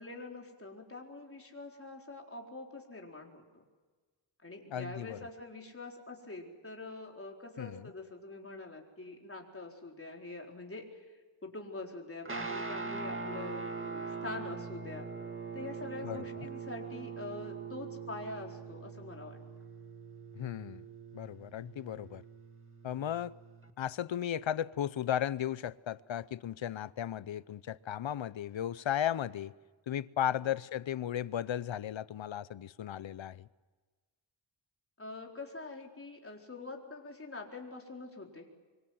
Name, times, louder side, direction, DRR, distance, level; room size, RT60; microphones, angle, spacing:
voice 1, 0.0-3.6 4.4-11.1 11.4-15.1 15.5-19.4 35.0-38.5, left 2 dB, 30° left, 1 dB, 4.2 m, -45 dB
voice 2, 4.7-5.2 7.6-7.8 16.0-16.5 20.3-20.8 21.1-22.2 22.8-23.3 23.8-29.5 29.9-33.5, left 10 dB, 80° left, 18 dB, 0.8 m, -35 dB
Guitar, 12.2-23.7, right 4 dB, 25° right, 2.0 m, -42 dB
25.0 x 25.0 x 7.8 m, 1.4 s
wide cardioid pair, 115°, 45 cm